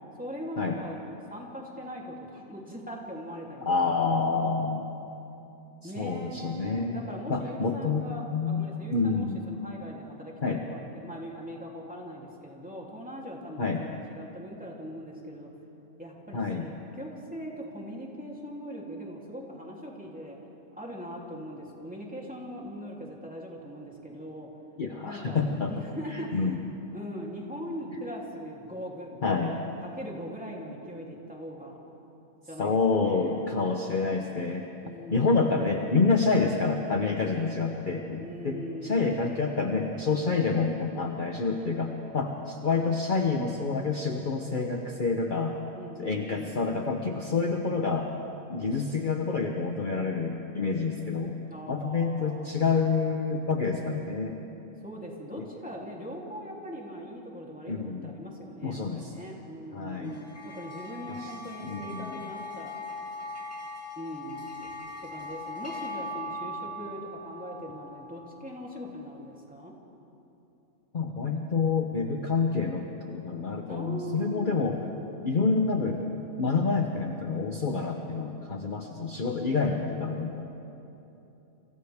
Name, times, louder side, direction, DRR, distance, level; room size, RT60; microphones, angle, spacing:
voice 1, 0.2-4.2 5.8-15.5 16.0-20.4 20.8-24.5 25.0-25.4 25.7-26.6 26.9-31.8 32.5-33.7 34.8-35.6 38.2-39.3 45.7-46.7 51.4-52.6 54.8-62.8 64.0-64.7 65.0-69.8 73.7-74.6, equal, 5° right, -3 dB, 3.1 m, -41 dB
voice 2, 3.6-5.0 5.8-9.4 10.4-10.6 13.6-13.8 16.3-16.7 24.8-25.7 26.3-26.6 29.2-29.5 32.6-34.6 35.1-45.6 46.0-48.1 48.5-51.3 51.7-54.4 55.4-55.5 57.7-58.1 58.6-59.1 59.7-60.2 61.1-61.3 61.6-62.2 70.9-74.8 75.2-76.0 76.4-80.4, left 4 dB, 40° left, 2 dB, 1.1 m, -28 dB
sound 1, 60.1-68.7, left 2 dB, 10° left, 2.5 m, -40 dB
29.5 x 26.0 x 3.6 m, 3.0 s
omnidirectional pair, 1.4 m